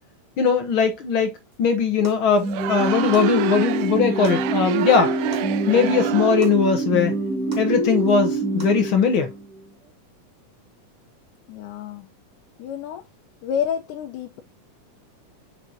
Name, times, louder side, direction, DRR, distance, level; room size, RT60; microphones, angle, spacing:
voice 1, 0.4-1.3 1.6-5.2 5.7-7.1 7.6-9.3, left 6 dB, 60° left, 1.4 m, -20 dB
sound 1, 1.5-1.6 2.0-2.3 2.6-2.7 3.1-3.4 3.7-3.8 4.2-4.4 4.8-4.9 5.3-5.5 5.9-6.0 6.4-6.6 7.0-7.1 7.5-7.7 8.1-8.2 8.6-8.8 9.1-9.2, left 1 dB, 20° right, 1.5 m, -41 dB
sound 2, 2.4-9.6, right 3 dB, 55° right, 3.4 m, -25 dB
Crowd, 2.4-6.6, right 14 dB, 85° right, 2.2 m, -31 dB
voice 2, 11.5-12.1 12.6-13.0 13.4-14.4, left 8 dB, 80° left, 2.3 m, -29 dB
6.6 x 6.4 x 2.7 m
omnidirectional pair, 3.6 m